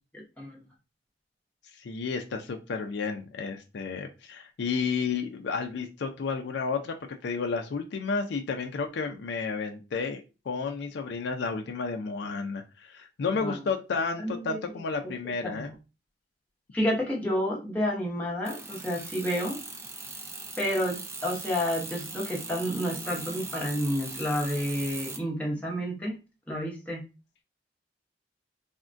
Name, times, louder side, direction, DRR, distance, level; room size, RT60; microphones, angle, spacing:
voice 1, 0.1-0.6 13.3-13.6 14.2-15.1 15.4-15.6 16.7-19.6 20.6-26.2 26.5-27.0, equal, 10° left, -3 dB, 0.7 m, -30 dB
voice 2, 1.8-7.0 7.2-15.7, left 5 dB, 70° left, 4 dB, 0.4 m, -32 dB
sound 1, 18.5-25.2, right 3 dB, 15° right, 0.4 m, -40 dB
3.4 x 2.1 x 2.5 m, 0.29 s
head